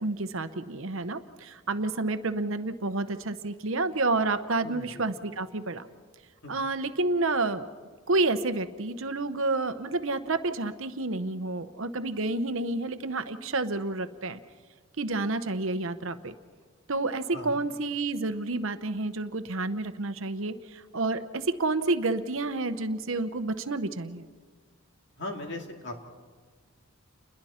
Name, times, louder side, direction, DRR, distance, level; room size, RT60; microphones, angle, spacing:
voice 1, 0.0-5.9 6.5-7.7 8.1-14.4 15.0-16.3 16.9-24.3, right 2 dB, 60° right, 10 dB, 0.9 m, -29 dB
voice 2, 4.6-5.0 6.4-6.6 17.3-17.6 25.2-26.0, left 2 dB, 50° left, 3 dB, 2.4 m, -38 dB
29.0 x 21.5 x 4.3 m, 1.5 s
head